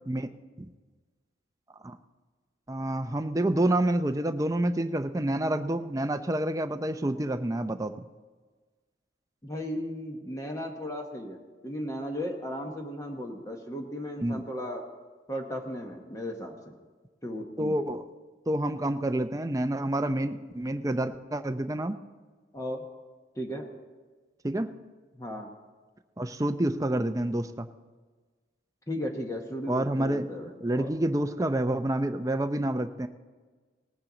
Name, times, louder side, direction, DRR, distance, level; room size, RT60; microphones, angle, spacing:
voice 1, 2.7-8.0 14.2-14.4 17.6-18.0 18.5-22.0 24.4-24.7 26.2-27.7 29.7-30.3 30.6-33.1, right 1 dB, 15° right, 8 dB, 0.5 m, -28 dB
voice 2, 9.4-14.9 15.3-16.7 17.2-17.7 22.5-22.8 23.4-23.7 25.2-25.5 28.9-30.9, equal, 15° left, 1 dB, 1.0 m, -36 dB
19.0 x 8.9 x 3.9 m, 1.4 s
head